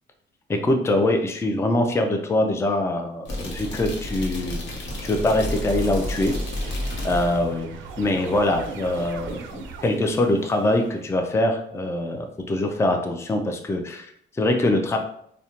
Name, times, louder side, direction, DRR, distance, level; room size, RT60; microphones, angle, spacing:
voice 1, 0.5-6.3 6.6-6.7 7.0-15.0, left 1 dB, 15° left, 4 dB, 0.3 m, -23 dB
sound 1, 3.3-7.5, left 1 dB, 65° left, 0.9 m, -30 dB
sound 2, 4.1-11.1, right 5 dB, 80° right, 0.4 m, -40 dB
2.5 x 2.1 x 2.8 m, 0.66 s
cardioid pair, 90°, 20 cm